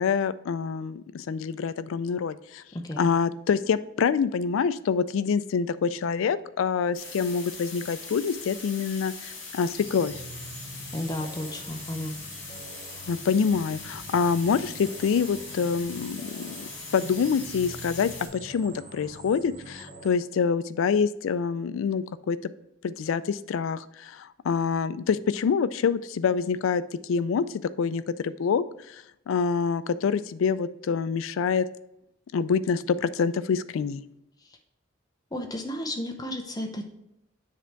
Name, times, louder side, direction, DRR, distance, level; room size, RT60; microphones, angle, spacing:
voice 1, 0.0-2.6 3.0-10.1 13.1-22.4 22.8-27.4 27.8-31.7 32.3-34.0, left 6 dB, 80° left, 15 dB, 0.3 m, -26 dB
sound 1, 6.9-18.3, left 4 dB, 65° left, 1.9 m, -41 dB
sound 2, 9.7-20.1, right 1 dB, 75° right, 1.7 m, -45 dB
voice 2, 10.9-12.1 34.4-34.6 35.3-36.9, left 1 dB, 20° left, 3 dB, 0.6 m, -33 dB
7.5 x 3.4 x 4.5 m, 0.80 s
head